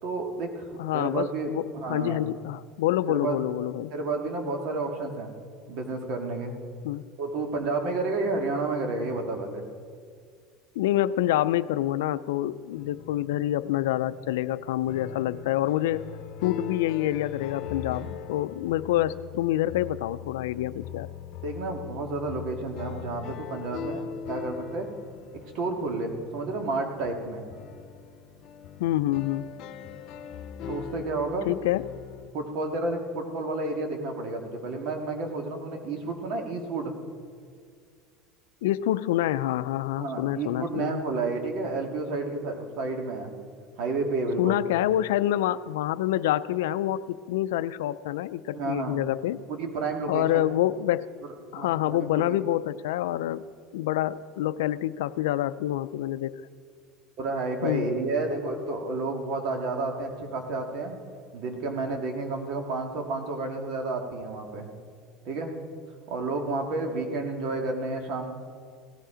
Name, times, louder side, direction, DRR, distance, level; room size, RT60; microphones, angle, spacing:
voice 1, 0.0-2.2 3.1-3.4 3.9-5.3 5.7-6.6 7.2-9.7 21.4-24.9 25.5-27.5 30.7-31.5 32.3-36.9 40.0-43.3 43.8-44.6 48.5-49.0 49.5-50.4 51.6-52.4 57.2-61.0 61.3-64.7 65.2-65.5 66.1-68.3, right 3 dB, 65° right, 3 dB, 2.1 m, -31 dB
voice 2, 0.8-3.9 6.8-7.0 10.7-16.0 16.4-21.1 28.8-29.5 31.4-31.9 38.6-41.0 44.4-49.4 50.1-51.1 51.5-53.4 53.7-56.4 57.6-57.9, left 13 dB, 90° left, 15 dB, 0.4 m, -27 dB
sound 1, 12.7-32.3, left 8 dB, 60° left, 0.8 m, -41 dB
17.0 x 13.0 x 5.0 m, 2.1 s
supercardioid pair, 105°, 0 cm